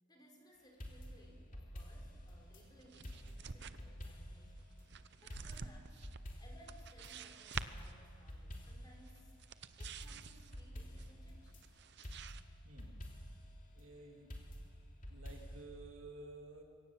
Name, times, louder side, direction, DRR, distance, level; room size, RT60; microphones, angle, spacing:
voice 1, 0.1-4.7 5.2-6.1 6.4-9.3 9.8-11.6, equal, 20° left, 1 dB, 3.7 m, -63 dB
sound 1, 0.8-2.6 3.0-4.5 4.8-4.9 5.3-7.1 7.5-9.0 9.3-9.4 9.8-11.6 12.0-13.5 14.3-15.6, equal, 40° left, 2.9 m, -49 dB
sound 2, 2.0-12.4, right 6 dB, 55° right, 0.7 m, -50 dB
voice 2, 12.6-13.0 13.7-14.3 15.1-16.6, right 2 dB, 70° right, 2 dB, 2.9 m, -53 dB
25.0 x 17.0 x 7.5 m, 2.2 s
head